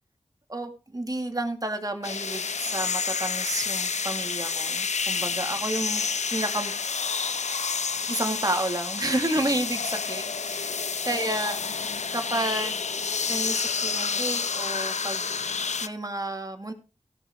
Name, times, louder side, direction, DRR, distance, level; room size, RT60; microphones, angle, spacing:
voice 1, 0.5-6.0 6.3-6.7 8.1-10.8 11.0-12.9 13.3-15.2 15.8-16.7, right 1 dB, 30° right, 5 dB, 2.6 m, -31 dB
sound 1, 2.0-15.9, left 5 dB, 80° left, 0.6 m, -29 dB
17.0 x 5.9 x 4.7 m, 0.31 s
wide cardioid pair, 45°, 12 cm